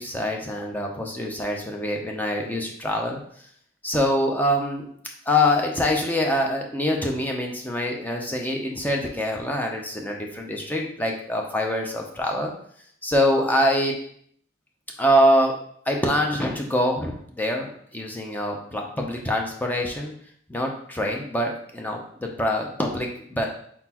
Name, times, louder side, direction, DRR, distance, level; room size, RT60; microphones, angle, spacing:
voice 1, 0.0-3.2 3.8-4.9 5.3-12.5 13.0-13.9 15.0-15.5 15.9-20.1 20.5-23.5, left 1 dB, 10° left, 0 dB, 0.6 m, -24 dB
4.1 x 4.1 x 2.9 m, 0.63 s
head